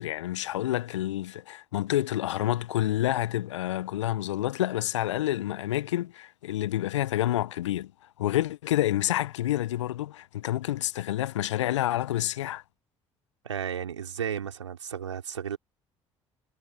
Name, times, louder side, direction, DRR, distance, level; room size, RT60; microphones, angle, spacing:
voice 1, 0.0-7.9 8.2-12.6, left 14 dB, 75° left, 1.3 m, -28 dB
voice 2, 13.4-15.6, right 8 dB, 85° right, 4.9 m, -33 dB
figure-of-eight pair, 50°, 15 cm